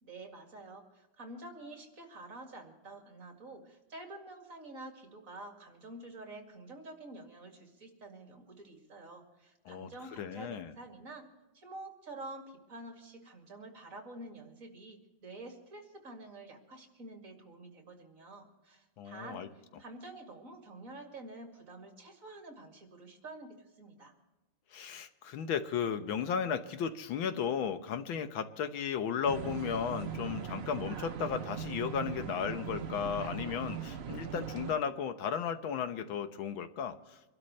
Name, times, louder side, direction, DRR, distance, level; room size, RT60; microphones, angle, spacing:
voice 1, 0.0-11.3 11.5-19.5 19.8-24.1, right 2 dB, 45° right, 2 dB, 2.6 m, -48 dB
voice 2, 9.7-10.7 19.0-19.5 24.7-37.0, left 7 dB, 85° left, 9 dB, 1.8 m, -35 dB
sound 1, 29.3-34.8, right 7 dB, 70° right, 0.5 m, -40 dB
25.0 x 12.5 x 3.2 m, 1.1 s
omnidirectional pair, 2.1 m